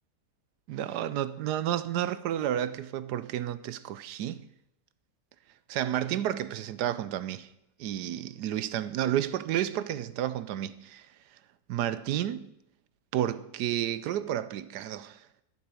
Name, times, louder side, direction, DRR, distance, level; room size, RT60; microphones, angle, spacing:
voice 1, 0.7-4.4 5.7-7.5 7.8-11.1 11.7-12.5 13.1-15.3, right 11 dB, 75° right, 1.1 m, -31 dB
11.5 x 7.0 x 7.0 m
omnidirectional pair, 1.9 m